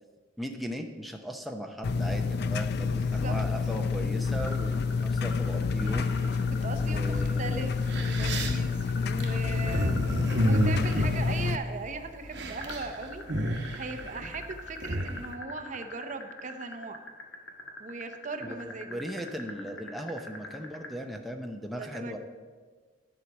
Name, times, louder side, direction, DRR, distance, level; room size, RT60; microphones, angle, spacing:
voice 1, 0.4-6.1 6.8-7.7 18.4-22.2, equal, ahead, 2 dB, 0.6 m, -37 dB
sound 1, 1.8-11.6, left 4 dB, 55° left, 0.4 m, -28 dB
voice 2, 2.9-3.4 6.3-17.0 17.8-19.0 21.8-22.2, right 3 dB, 40° right, 8 dB, 0.7 m, -39 dB
sound 2, 4.4-11.1 12.6-20.9, left 2 dB, 75° left, 1.5 m, -42 dB
sound 3, 5.9-6.5 7.3-7.4 7.7-12.0 12.2-12.9 13.1-15.2, right 1 dB, 60° right, 1.2 m, -30 dB
11.0 x 4.7 x 7.2 m, 1.4 s
head